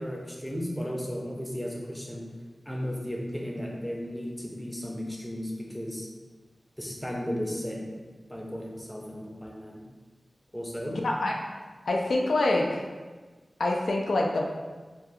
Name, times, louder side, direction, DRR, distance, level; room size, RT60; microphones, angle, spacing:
voice 1, 0.0-2.2 2.7-6.1 6.8-7.8 8.3-9.8 10.5-10.9, equal, 10° left, -2 dB, 0.5 m, -35 dB
voice 2, 10.9-11.4 11.9-12.8 13.6-14.5, left 2 dB, 80° left, 0 dB, 0.3 m, -26 dB
2.6 x 2.2 x 3.4 m, 1.3 s
wide cardioid pair, 85°, 0 cm